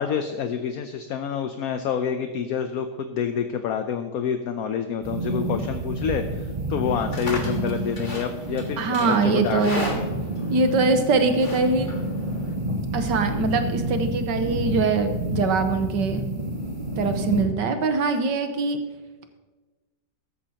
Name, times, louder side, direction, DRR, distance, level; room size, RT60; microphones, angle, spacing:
voice 1, 0.0-10.1, left 7 dB, 65° left, 7 dB, 1.0 m, -28 dB
sound 1, 5.0-17.4, right 1 dB, 25° right, 2.7 m, -29 dB
Livestock farm animals working animals, 6.9-12.5, left 1 dB, 30° left, 1.6 m, -37 dB
voice 2, 8.8-10.0 10.5-11.9 12.9-16.2 17.0-18.8, right 4 dB, 70° right, 7 dB, 1.7 m, -23 dB
14.0 x 13.5 x 2.9 m, 1.3 s
omnidirectional pair, 2.0 m